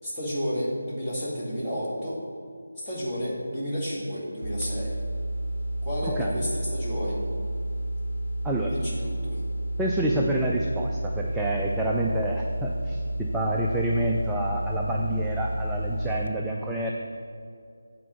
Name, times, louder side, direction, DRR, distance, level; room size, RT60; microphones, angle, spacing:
voice 1, 0.0-2.2 2.8-5.0 5.8-7.2 8.7-9.4, equal, 10° left, -10 dB, 2.1 m, -31 dB
sound 1, 4.4-16.3, right 1 dB, 70° right, 0.5 m, -31 dB
voice 2, 9.8-16.9, right 1 dB, 5° right, -3 dB, 0.4 m, -28 dB
8.3 x 4.4 x 6.8 m, 2.3 s
figure-of-eight pair, 160°, 0 cm